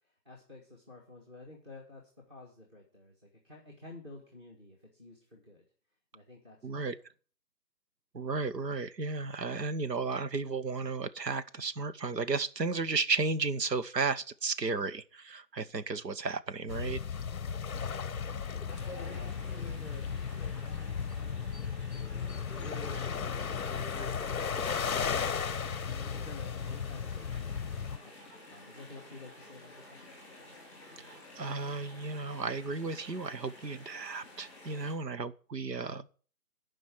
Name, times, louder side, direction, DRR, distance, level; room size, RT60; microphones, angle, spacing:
voice 1, 0.0-5.6 6.1-6.8 17.5-17.7 19.3-21.2 21.8-24.8 26.0-27.6 28.0-28.1 28.5-30.1, left 2 dB, 15° right, 1.5 m, -52 dB
voice 2, 6.6-7.0 8.1-17.0 31.0-36.1, right 4 dB, 75° right, 1.1 m, -34 dB
sound 1, 16.7-28.0, left 6 dB, 60° left, 0.6 m, -35 dB
Chatter / Stream, 18.6-34.9, left 1 dB, 5° left, 2.9 m, -50 dB
11.0 x 5.3 x 7.7 m
figure-of-eight pair, 165°, 50 cm